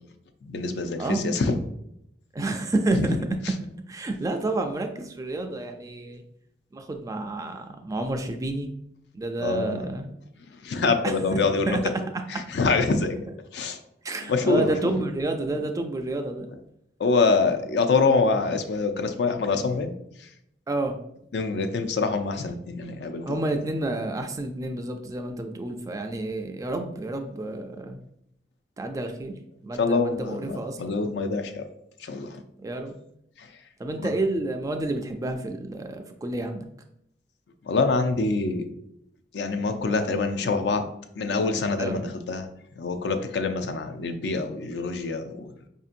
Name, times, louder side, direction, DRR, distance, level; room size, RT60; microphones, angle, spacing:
voice 1, 0.4-1.6 2.9-3.1 9.4-9.9 10.6-11.8 12.3-13.2 13.5-13.8 14.3-14.7 17.0-19.9 20.2-20.3 21.3-23.6 29.8-31.6 32.0-32.4 33.4-33.5 34.0-34.1 37.6-38.6 39.3-40.9 41.2-42.5 42.8-45.5, left 4 dB, 70° left, 7 dB, 0.4 m, -25 dB
voice 2, 1.0-1.4 2.3-3.2 3.9-6.2 6.7-8.7 9.1-10.1 11.0-11.1 11.7-11.8 12.3-12.4 14.0-16.5 20.7-21.0 23.3-28.0 28.8-31.0 32.6-33.0 33.8-36.7 41.8-42.0, right 2 dB, 20° right, 5 dB, 0.3 m, -29 dB
5.1 x 2.7 x 2.5 m, 0.75 s
head